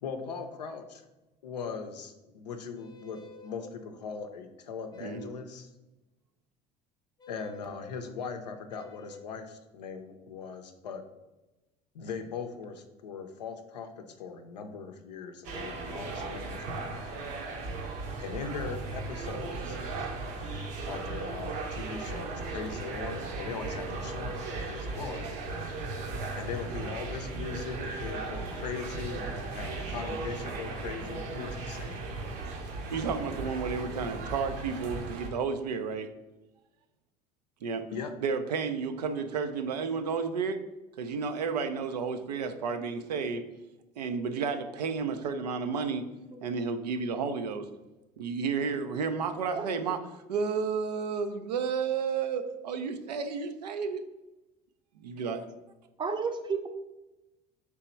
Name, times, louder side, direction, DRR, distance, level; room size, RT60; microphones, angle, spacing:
voice 1, 0.0-1.0 1.4-5.7 7.3-11.0 11.9-17.2 18.2-19.8 20.9-25.3 26.4-32.0 37.9-38.1, left 5 dB, 85° left, 6 dB, 0.5 m, -40 dB
sound 1, 2.7-3.7 4.9-5.5 7.2-7.8 8.7-9.3, left 2 dB, 20° left, 0.5 m, -50 dB
sound 2, 15.4-35.3, right 3 dB, 65° right, 0.8 m, -37 dB
voice 2, 32.9-36.1 37.6-37.8 38.2-40.6 41.0-43.4 44.0-46.1 46.4-47.6 48.2-50.0 50.3-54.0 55.0-55.4, right 5 dB, 85° right, 8 dB, 0.4 m, -32 dB
voice 3, 56.0-56.7, right 5 dB, 25° right, 6 dB, 0.5 m, -31 dB
3.5 x 2.9 x 4.3 m, 1.0 s
hypercardioid pair, 70°, 20 cm